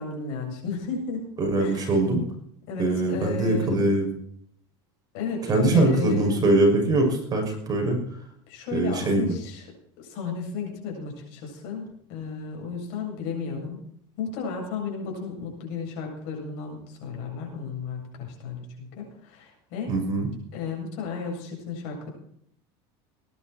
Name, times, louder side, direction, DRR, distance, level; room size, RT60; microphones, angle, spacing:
voice 1, 0.0-1.2 1.6-2.0 2.7-3.8 5.1-6.5 8.5-9.7 10.0-13.8 14.2-19.9 20.5-22.1, left 4 dB, 70° left, 1 dB, 8.0 m, -33 dB
voice 2, 1.4-2.2 2.8-4.1 5.5-8.1 8.7-9.3 19.9-20.3, right 2 dB, 25° right, 1 dB, 6.5 m, -22 dB
20.0 x 11.5 x 4.5 m, 0.67 s
supercardioid pair, 125°, 14 cm